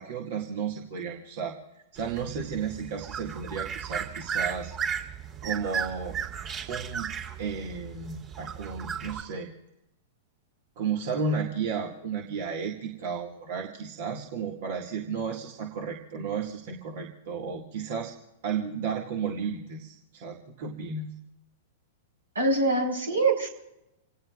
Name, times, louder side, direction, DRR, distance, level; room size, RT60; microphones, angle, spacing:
voice 1, 0.0-1.6 1.9-4.7 5.4-6.2 6.7-7.1 7.4-9.5 10.8-18.1 18.4-21.1, right 5 dB, 55° right, 1 dB, 2.1 m, -33 dB
sound 1, 2.0-9.2, right 7 dB, 35° right, 3.7 m, -35 dB
voice 2, 22.3-23.5, right 2 dB, 80° right, 3 dB, 4.7 m, -24 dB
28.0 x 18.0 x 2.5 m, 0.90 s
figure-of-eight pair, 105°, 0 cm